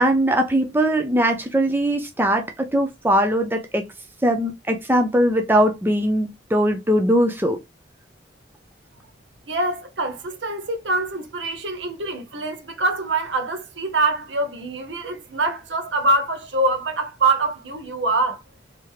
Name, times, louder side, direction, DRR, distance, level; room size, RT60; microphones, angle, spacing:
voice 1, 0.0-3.8 4.2-7.6, right 1 dB, 10° right, 0.5 m, -20 dB
voice 2, 9.5-18.4, right 2 dB, 80° right, 0.9 m, -24 dB
3.5 x 2.9 x 3.1 m
head